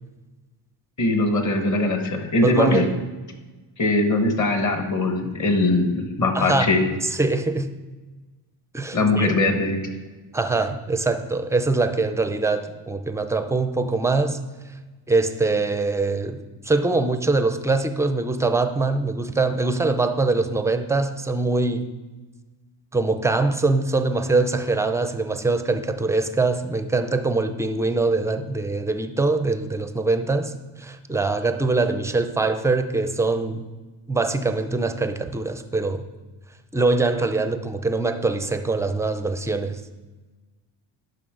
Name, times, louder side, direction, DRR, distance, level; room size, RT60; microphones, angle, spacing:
voice 1, 1.0-2.9 3.8-6.9 8.9-9.8, left 2 dB, 40° left, 1.5 m, -21 dB
voice 2, 2.4-2.9 6.3-6.7 7.0-7.7 8.7-9.3 10.3-14.4 15.1-21.9 22.9-33.6 34.1-36.0 36.7-39.8, right 3 dB, 5° right, 0.4 m, -23 dB
11.0 x 5.5 x 3.8 m
cardioid pair, 100°, 47 cm